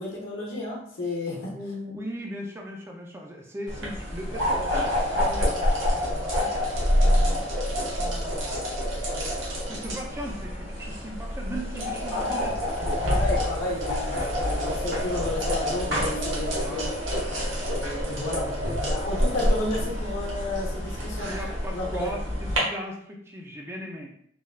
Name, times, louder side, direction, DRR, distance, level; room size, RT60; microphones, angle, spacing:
voice 1, 0.0-1.5 9.1-9.3 12.1-12.2 13.0-17.2 17.7-18.6 18.9-21.3 21.7-22.1, left 2 dB, 85° left, -4 dB, 0.8 m, -32 dB
voice 2, 1.5-6.5 7.0-8.8 9.7-12.6 16.6-17.0 21.1-22.2 22.5-24.1, equal, 15° right, 0 dB, 0.3 m, -38 dB
sound 1, 3.7-22.6, equal, 80° right, 1.0 m, -27 dB
3.2 x 2.2 x 2.3 m, 0.67 s
head